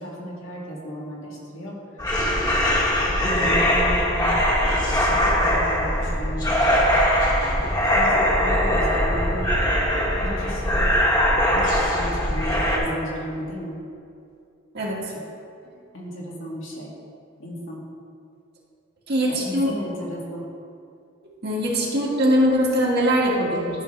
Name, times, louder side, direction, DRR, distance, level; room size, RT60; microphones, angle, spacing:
voice 1, 0.0-1.8 3.2-4.4 4.9-6.5 7.3-9.6 10.0-10.8 11.5-13.8 15.9-16.9 17.4-17.8 19.3-20.4, equal, 80° left, -5 dB, 2.1 m, -34 dB
sound 1, 2.0-12.8, equal, 20° left, 1.3 m, -21 dB
voice 2, 19.1-19.7 21.4-23.8, equal, 55° right, -4 dB, 1.8 m, -21 dB
12.0 x 6.3 x 3.3 m, 2.5 s
head